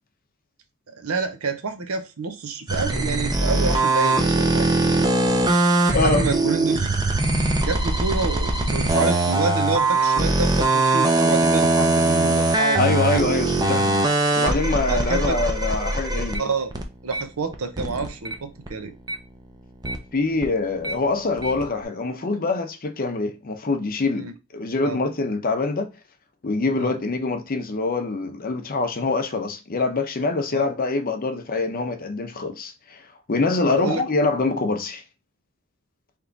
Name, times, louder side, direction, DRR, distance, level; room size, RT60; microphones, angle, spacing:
voice 1, 0.9-4.7 5.8-6.9 7.6-13.5 14.8-15.4 16.4-16.7 17.0-18.9 24.2-24.3 24.8-25.0 26.8-26.9 30.5-30.7 33.8-34.0, right 4 dB, 85° right, 0.7 m, -28 dB
sound 1, 2.7-18.3 18.6-20.9 21.3-21.8, right 2 dB, 20° right, 0.5 m, -21 dB
voice 2, 5.9-6.3 12.8-13.9 14.4-16.5 20.1-25.9 26.4-35.0, left 3 dB, 40° left, 0.7 m, -24 dB
3.5 x 3.0 x 3.9 m
head